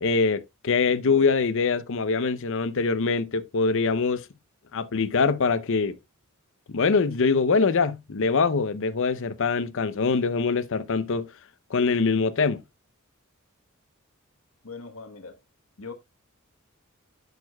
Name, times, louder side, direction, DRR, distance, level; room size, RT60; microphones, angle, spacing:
voice 1, 0.0-4.3 4.7-6.0 6.7-11.3 11.7-12.6, left 4 dB, 65° left, 0.6 m, -23 dB
voice 2, 0.8-1.2 14.6-15.4 15.8-15.9, left 4 dB, 80° left, 1.2 m, -42 dB
10.5 x 6.7 x 2.3 m
head